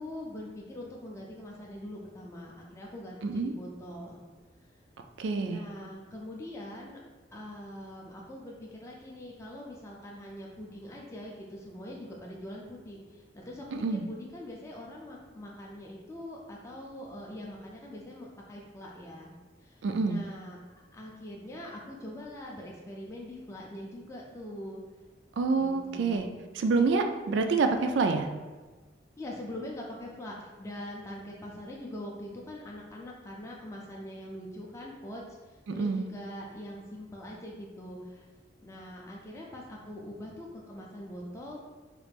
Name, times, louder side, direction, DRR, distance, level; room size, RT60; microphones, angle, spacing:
voice 1, 0.0-4.3 5.4-7.0 7.3-19.3 19.6-20.6 20.9-24.8 25.6-26.4 29.2-38.3 38.6-41.6, left 1 dB, 15° left, -3 dB, 0.4 m, -43 dB
voice 2, 3.2-3.5 5.2-5.6 13.8-14.1 19.8-20.2 25.4-26.3 26.5-28.3 35.7-36.1, right 4 dB, 70° right, 6 dB, 0.3 m, -27 dB
3.1 x 2.4 x 3.3 m, 1.3 s
head